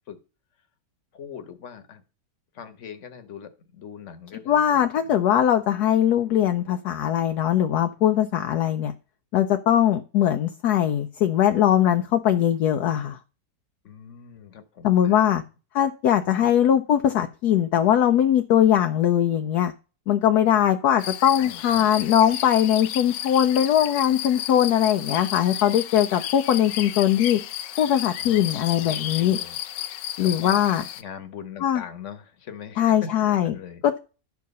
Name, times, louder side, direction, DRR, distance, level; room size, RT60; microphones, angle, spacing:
voice 1, 1.1-2.0 2.5-5.2 13.8-15.2 16.2-16.5 21.4-21.9 28.2-29.6 30.2-30.6 31.0-34.0, left 7 dB, 45° left, 9 dB, 1.4 m, -41 dB
voice 2, 4.5-8.9 9.3-13.2 14.8-15.4 15.7-19.7 20.1-27.4 27.8-29.4 30.2-30.8 31.6-31.8 32.8-33.5 33.8-34.0, left 10 dB, 70° left, 7 dB, 1.1 m, -21 dB
sound 1, 21.0-31.0, left 11 dB, 85° left, 1.3 m, -33 dB
11.5 x 4.7 x 5.3 m, 0.33 s
omnidirectional pair, 1.9 m